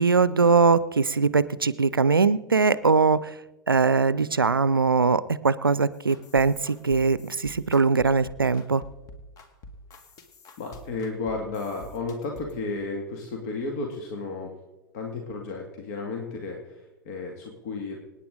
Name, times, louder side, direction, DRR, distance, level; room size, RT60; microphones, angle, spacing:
voice 1, 0.0-3.4 3.7-8.8, right 4 dB, 80° right, 18 dB, 0.5 m, -21 dB
sound 1, 5.9-12.6, left 1 dB, 30° left, 2.0 m, -47 dB
voice 2, 10.6-14.5 14.9-18.0, left 3 dB, 50° left, 1 dB, 2.1 m, -33 dB
26.0 x 9.5 x 3.8 m, 1.1 s
figure-of-eight pair, 90°, 11 cm